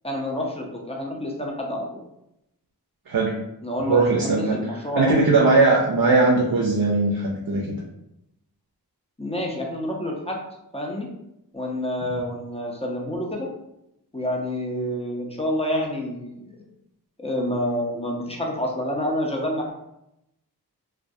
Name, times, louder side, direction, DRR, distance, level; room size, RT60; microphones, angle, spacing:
voice 1, 0.0-2.0 3.6-5.3 9.2-10.4 10.7-11.1 11.5-13.5 14.1-16.6 17.2-19.7, left 1 dB, 15° left, -1 dB, 0.5 m, -28 dB
voice 2, 3.8-4.6 4.9-7.8, right 3 dB, 60° right, -1 dB, 0.5 m, -19 dB
2.2 x 2.2 x 2.6 m, 0.84 s
wide cardioid pair, 45°, 39 cm